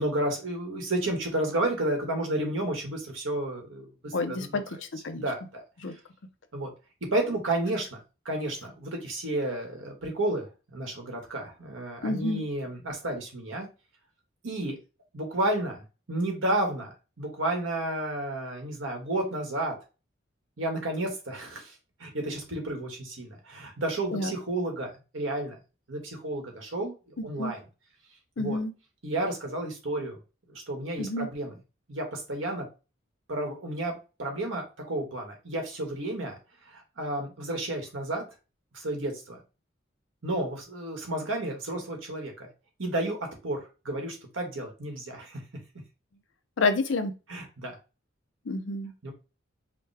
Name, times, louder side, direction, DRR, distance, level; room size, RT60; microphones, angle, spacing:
voice 1, 0.0-4.6 5.1-5.6 6.5-6.7 7.1-8.0 8.2-13.7 14.4-14.8 15.1-19.8 20.6-21.7 22.0-25.6 25.9-26.9 27.2-27.6 28.4-28.6 29.0-30.2 30.5-31.5 31.9-32.7 33.3-36.4 36.6-38.2 38.7-39.4 40.2-42.5 42.8-43.6 43.8-45.4 47.3-47.7 49.0-49.1, right 1 dB, 80° right, 2 dB, 1.4 m, -31 dB
voice 2, 4.1-4.6 5.0-5.3 5.8-5.9 12.0-12.5 24.1-24.3 27.3-27.5 28.4-28.7 31.0-31.3 46.6-47.1 48.5-48.9, left 3 dB, 65° left, 8 dB, 0.6 m, -28 dB
5.0 x 2.2 x 3.3 m, 0.30 s
head